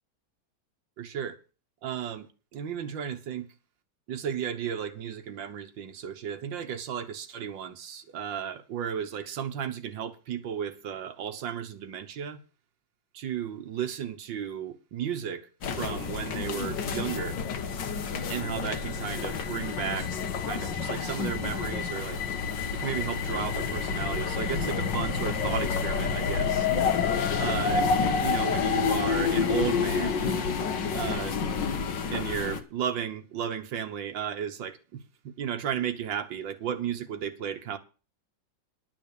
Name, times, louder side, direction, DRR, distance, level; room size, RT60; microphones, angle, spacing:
voice 1, 1.0-1.4 1.8-3.5 4.1-12.4 13.1-15.5 15.8-17.4 18.3-22.2 22.7-26.7 27.4-27.9 28.2-30.2 30.9-31.4 32.1-37.8, right 8 dB, 85° right, 1.9 m, -34 dB
sound 1, 15.6-32.6, left 5 dB, 70° left, 1.9 m, -29 dB
11.0 x 6.1 x 8.4 m
omnidirectional pair, 2.0 m